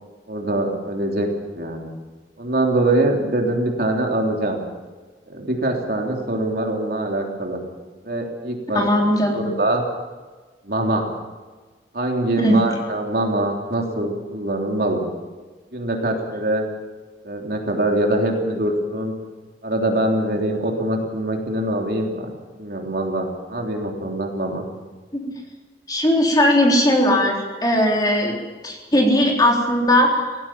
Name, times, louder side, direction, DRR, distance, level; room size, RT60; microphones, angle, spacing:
voice 1, 0.3-1.3 1.5-1.9 2.4-4.6 5.3-7.6 8.1-8.8 9.3-9.8 10.6-11.0 11.9-15.0 15.7-16.7 17.2-19.1 19.6-24.7, right 1 dB, 55° right, 1 dB, 3.4 m, -23 dB
voice 2, 8.7-9.5 12.4-12.6 25.1-25.3 25.9-27.4 27.6-28.3 28.6-30.2, left 1 dB, 20° left, 0 dB, 3.9 m, -18 dB
18.0 x 17.0 x 8.8 m, 1.3 s
head